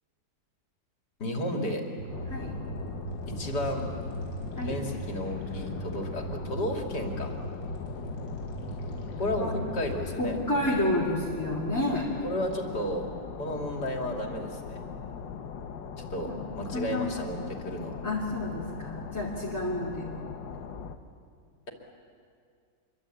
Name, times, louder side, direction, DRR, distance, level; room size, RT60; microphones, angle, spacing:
voice 1, 1.2-1.8 3.3-3.9 4.6-7.3 9.2-10.4 12.2-13.1 13.4-14.8 16.1-17.9, left 1 dB, 65° left, 2 dB, 3.4 m, -33 dB
sound 1, 2.0-10.0, right 2 dB, 85° right, 6.1 m, -39 dB
sound 2, 2.1-21.0, left 6 dB, 85° left, 1.8 m, -40 dB
voice 2, 10.2-12.1 16.3-16.4 16.7-17.2 18.0-20.1, left 1 dB, 10° left, -3 dB, 2.5 m, -30 dB
26.0 x 23.5 x 8.7 m, 2.3 s
omnidirectional pair, 1.9 m